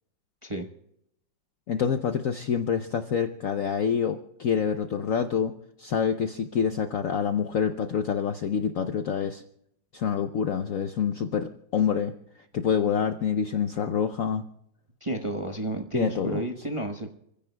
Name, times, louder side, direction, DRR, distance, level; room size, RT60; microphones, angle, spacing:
voice 1, 1.7-5.5 5.8-9.4 9.9-12.1 12.5-14.4 15.9-16.4, left 7 dB, 65° left, 8 dB, 0.8 m, -27 dB
voice 2, 15.0-17.1, right 1 dB, 20° right, 2 dB, 0.8 m, -31 dB
29.5 x 16.0 x 2.2 m, 0.77 s
omnidirectional pair, 2.1 m